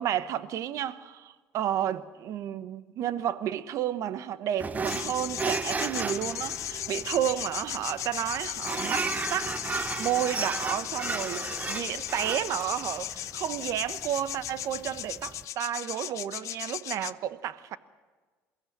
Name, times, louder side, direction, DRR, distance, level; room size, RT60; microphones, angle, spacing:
voice 1, 0.0-17.8, right 11 dB, 60° right, 1.1 m, -32 dB
sound 1, 4.6-15.4, right 4 dB, 25° right, 0.9 m, -35 dB
sound 2, 4.9-17.1, left 13 dB, 60° left, 0.6 m, -36 dB
22.5 x 15.5 x 8.8 m
supercardioid pair, 85°, 6 cm